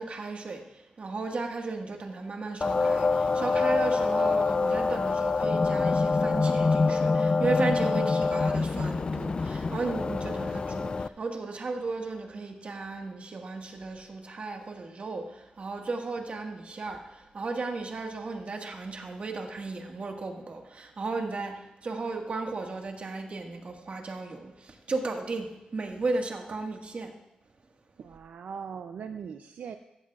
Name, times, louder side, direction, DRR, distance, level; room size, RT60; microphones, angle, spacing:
voice 1, 0.0-27.1, right 3 dB, 55° right, 2 dB, 1.7 m, -35 dB
sound 1, 2.6-11.1, left 4 dB, 40° left, 0.3 m, -26 dB
voice 2, 28.0-29.8, right 6 dB, 90° right, 7 dB, 0.5 m, -40 dB
14.5 x 14.5 x 2.4 m, 0.92 s
cardioid pair, 85°, 3 cm